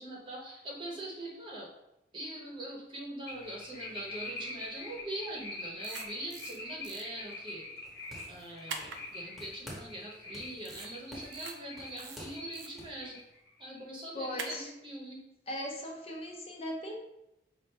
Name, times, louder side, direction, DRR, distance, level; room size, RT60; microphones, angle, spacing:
voice 1, 0.0-1.7 2.1-7.7 8.3-13.2 13.6-15.2, right 1 dB, 30° right, -2 dB, 0.9 m, -42 dB
sound 1, 3.3-12.0 12.3-13.8, left 2 dB, 70° left, 1.0 m, -45 dB
sound 2, 5.8-6.6 6.8-7.0 8.7-9.0 10.6-10.9 11.3-11.5 12.0-12.7 14.4-14.6, right 5 dB, 80° right, 0.5 m, -42 dB
sound 3, 7.8-9.1 9.4-10.0 10.3-13.0, equal, ahead, 1.2 m, -49 dB
voice 2, 14.1-14.7 15.5-17.0, left 1 dB, 35° left, 0 dB, 0.6 m, -38 dB
5.4 x 2.5 x 3.3 m, 0.86 s
head